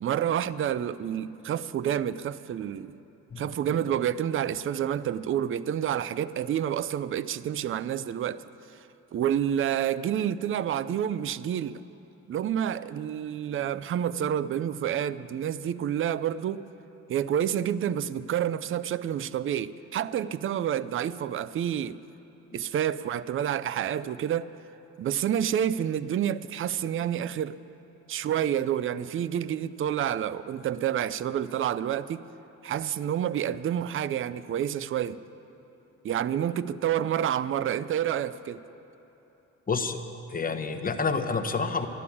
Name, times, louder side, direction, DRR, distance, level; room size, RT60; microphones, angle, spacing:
voice 1, 0.0-3.0 3.4-8.4 9.1-11.8 12.3-16.6 17.1-22.0 22.5-24.5 25.0-27.6 28.1-32.2 32.6-35.2 36.0-38.6, right 10 dB, 45° right, 0.5 m, -29 dB
voice 2, 39.7-40.0 40.3-41.9, left 4 dB, 30° left, 1.1 m, -28 dB
12.5 x 12.0 x 8.5 m
cardioid pair, 90°, 30 cm